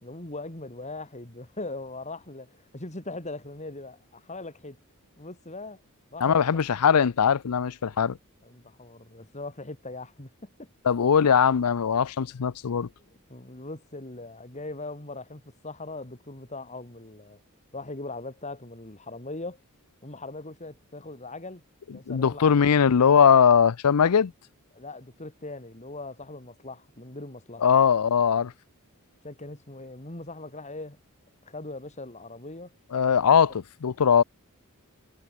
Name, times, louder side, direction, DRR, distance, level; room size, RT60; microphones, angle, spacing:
voice 1, 0.0-4.8 5.2-5.8 6.1-6.4 8.4-10.7 13.0-17.4 17.7-19.6 20.0-21.6 21.9-22.6 24.7-27.6 29.2-31.0 31.5-32.7, left 2 dB, 30° left, 3.5 m, -40 dB
voice 2, 6.2-8.2 10.8-12.9 22.1-24.3 27.6-28.5 32.9-34.2, left 7 dB, 90° left, 0.5 m, -20 dB
head